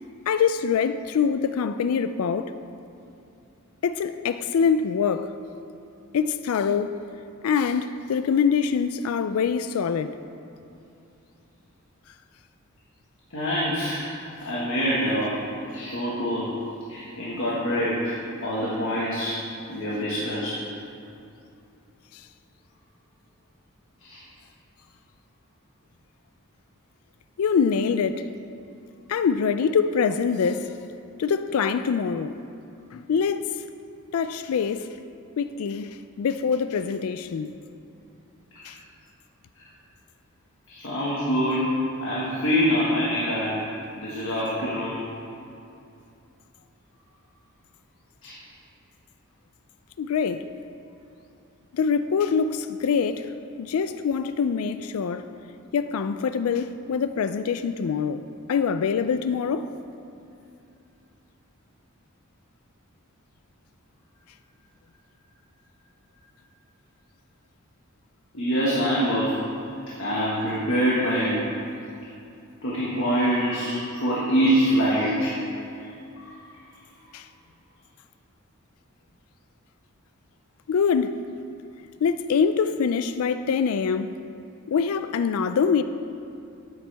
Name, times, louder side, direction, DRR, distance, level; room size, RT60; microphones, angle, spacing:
voice 1, 0.3-2.5 3.8-5.3 6.1-6.9 7.4-10.1 27.4-28.2 29.1-30.6 31.2-32.3 32.9-33.5 34.1-34.8 35.4-37.5 38.7-38.8 50.0-50.4 51.7-53.2 53.6-55.2 55.7-58.2 58.5-59.7 77.1-77.2 80.7-81.2 82.0-84.2 84.7-85.8, left 6 dB, 80° left, 0.4 m, -24 dB
voice 2, 13.3-14.1 14.4-15.4 15.7-16.5 16.9-19.4 19.7-20.7 24.0-24.2 39.6-39.7 40.7-43.6 43.9-45.0 48.2-48.4 68.3-69.4 70.0-71.4 72.6-75.3 75.8-75.9 76.2-76.3, equal, 65° left, 1.6 m, -25 dB
12.5 x 8.8 x 3.4 m
head